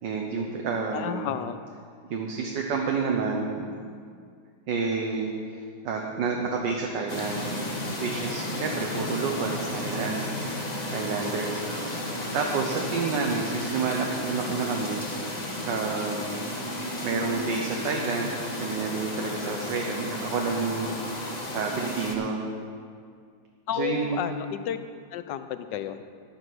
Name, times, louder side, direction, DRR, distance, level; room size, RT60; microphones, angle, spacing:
voice 1, 0.0-1.3 2.1-3.8 4.7-7.4 8.0-10.3 10.9-12.0 12.3-15.0 15.6-16.5 17.0-21.1 21.5-22.4 23.7-24.3, right 4 dB, 65° right, 1 dB, 1.6 m, -29 dB
voice 2, 0.9-1.6 23.7-24.8 25.1-26.0, left 10 dB, 70° left, 11 dB, 1.2 m, -31 dB
sound 1, 7.1-22.2, left 1 dB, 25° left, 1.4 m, -33 dB
11.0 x 9.7 x 6.2 m, 2.2 s
omnidirectional pair, 2.2 m